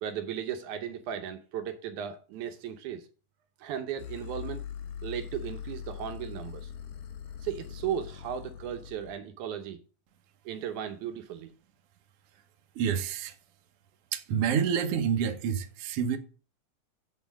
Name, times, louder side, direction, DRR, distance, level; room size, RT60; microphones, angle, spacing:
voice 1, 0.0-3.1 3.6-4.6 5.0-6.7 7.4-9.8 10.5-11.5, right 9 dB, 75° right, 2.2 m, -36 dB
sound 1, 4.0-9.2, left 8 dB, 65° left, 1.7 m, -41 dB
voice 2, 12.8-13.3 14.1-16.2, right 7 dB, 60° right, 1.8 m, -28 dB
8.0 x 4.3 x 7.1 m
omnidirectional pair, 3.6 m